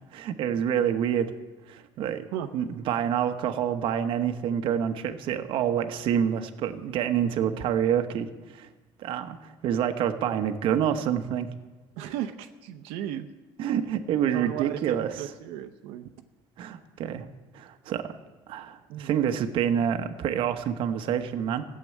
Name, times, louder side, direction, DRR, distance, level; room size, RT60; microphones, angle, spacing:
voice 1, 0.1-1.3 1.7-2.3 2.5-8.7 9.0-11.5 13.6-15.2 16.6-17.3 17.5-18.1 18.5-21.7, right 9 dB, 60° right, 8 dB, 1.0 m, -27 dB
voice 2, 12.0-13.3 14.3-16.1 18.9-19.1, right 11 dB, 85° right, 6 dB, 0.8 m, -35 dB
15.5 x 7.7 x 9.4 m, 1.2 s
cardioid pair, 140°, 10 cm